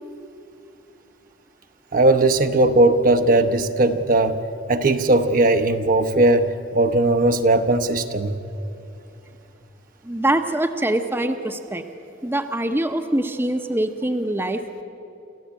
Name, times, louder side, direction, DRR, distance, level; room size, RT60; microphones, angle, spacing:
voice 1, 1.9-4.4 4.7-8.3, right 2 dB, 45° right, 8 dB, 0.9 m, -18 dB
voice 2, 10.0-11.8 12.2-14.8, right 1 dB, 10° right, 6 dB, 0.8 m, -24 dB
27.5 x 14.5 x 8.4 m, 2.8 s
head